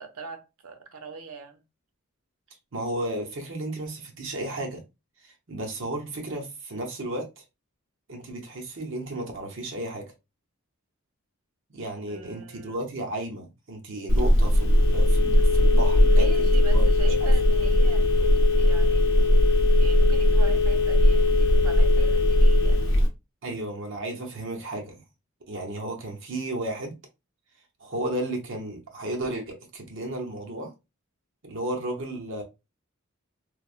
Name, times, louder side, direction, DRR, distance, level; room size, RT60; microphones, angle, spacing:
voice 1, 0.0-1.6 12.1-12.8 16.0-18.1 18.6-19.1 19.8-23.0, right 4 dB, 90° right, 0.6 m, -41 dB
voice 2, 2.7-4.8 5.2-7.4 8.1-10.1 11.7-16.9 17.2-17.3 23.4-25.0 25.5-27.0 27.8-30.7 31.4-32.4, right 1 dB, 60° right, 0.8 m, -33 dB
Telephone, 14.1-23.1, left 1 dB, 60° left, 0.7 m, -19 dB
3.2 x 2.1 x 2.4 m
head